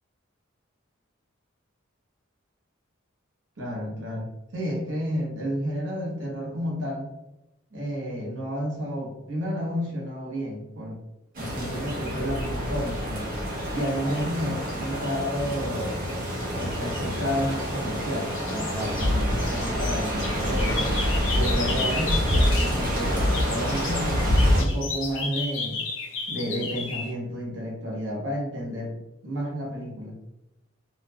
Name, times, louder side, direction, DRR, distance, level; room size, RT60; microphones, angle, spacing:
voice 1, 3.6-7.1 7.7-11.0 11.3-13.3 13.7-16.0 16.5-21.0 21.3-25.8 26.3-28.9 29.2-30.2, equal, 70° right, -3 dB, 1.0 m, -31 dB
sound 1, 11.3-24.6, equal, 45° right, 0.7 m, -26 dB
sound 2, 17.2-18.0 18.3-22.8 23.1-27.1, left 4 dB, 75° left, 0.5 m, -34 dB
2.7 x 2.5 x 2.2 m, 0.93 s
head